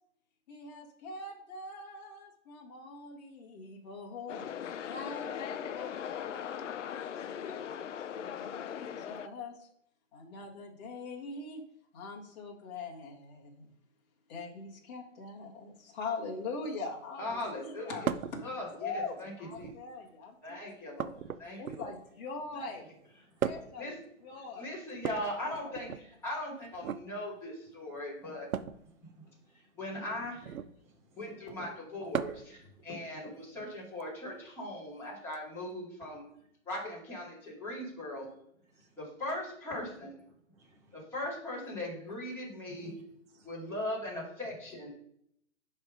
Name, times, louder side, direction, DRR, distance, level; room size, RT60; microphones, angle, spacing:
voice 1, 0.5-7.7 8.2-9.7 10.1-11.6 11.9-13.7 14.3-18.4 18.7-20.8 21.6-22.9 23.4-23.9 24.2-24.7 25.1-25.9, left 3 dB, 30° left, -2 dB, 1.8 m, -43 dB
sound 1, 4.3-9.3, left 8 dB, 65° left, 0.6 m, -39 dB
voice 2, 17.2-18.1 18.4-19.3 19.6-19.7 20.4-21.1 21.4-21.9 22.7-22.8 23.8-23.9 24.6-28.5 29.8-30.5 31.2-36.2 36.7-38.3 39.0-40.1 40.9-42.9 43.4-44.9, left 1 dB, 5° left, -9 dB, 2.3 m, -39 dB
sound 2, 18.0-18.4 19.4-19.9 21.0-22.1 23.4-23.8 24.9-26.0 26.7-27.0 28.5-28.8 30.4-30.8 32.1-32.5 34.0-34.1 35.3-35.4, right 8 dB, 85° right, 0.7 m, -36 dB
voice 3, 29.0-29.5 30.8-31.0 32.7-32.8 38.8-39.0 40.5-41.0 43.3-43.5, right 2 dB, 15° right, 0 dB, 0.8 m, -66 dB
10.5 x 3.5 x 5.1 m, 0.71 s
hypercardioid pair, 160°, 40 cm